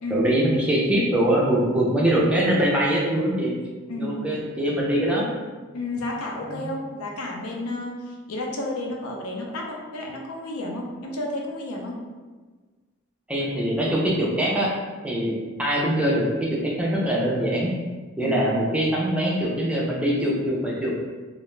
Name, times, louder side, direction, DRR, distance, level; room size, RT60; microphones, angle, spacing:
voice 1, 0.1-3.5 4.0-5.3 6.4-6.7 13.3-14.7 15.0-17.7 18.2-21.0, right 1 dB, 5° right, -4 dB, 0.3 m, -23 dB
voice 2, 3.9-4.2 5.7-12.0 18.2-18.4, left 1 dB, 90° left, 0 dB, 0.5 m, -31 dB
2.4 x 2.1 x 3.0 m, 1.4 s
head